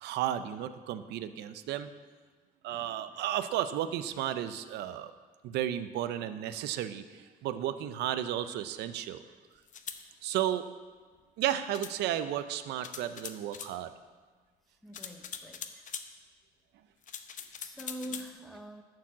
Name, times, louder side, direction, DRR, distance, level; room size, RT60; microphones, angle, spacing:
voice 1, 0.0-1.9 2.6-5.1 5.4-9.2 10.2-10.7 11.4-13.9, right 11 dB, 80° right, 12 dB, 0.6 m, -33 dB
voice 2, 2.7-3.2 14.8-15.9 17.5-18.8, right 1 dB, ahead, 4 dB, 0.8 m, -45 dB
sound 1, 9.7-10.0 11.7-12.0 12.8-13.7 14.9-16.1 17.0-18.3, left 8 dB, 50° left, 0.8 m, -42 dB
11.5 x 4.8 x 7.3 m, 1.4 s
cardioid pair, 110°, 17 cm